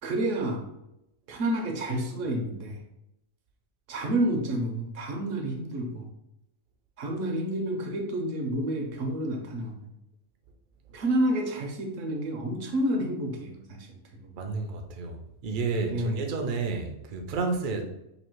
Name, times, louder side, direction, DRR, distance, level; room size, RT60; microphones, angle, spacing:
voice 1, 0.0-0.7 1.3-2.8 3.9-6.1 7.0-9.9 10.9-14.4 15.9-16.2, right 1 dB, 70° right, 3 dB, 1.1 m, -29 dB
voice 2, 14.4-15.2 15.4-17.8, right 4 dB, 55° right, 3 dB, 0.6 m, -30 dB
3.1 x 2.8 x 4.5 m, 0.85 s
omnidirectional pair, 1.4 m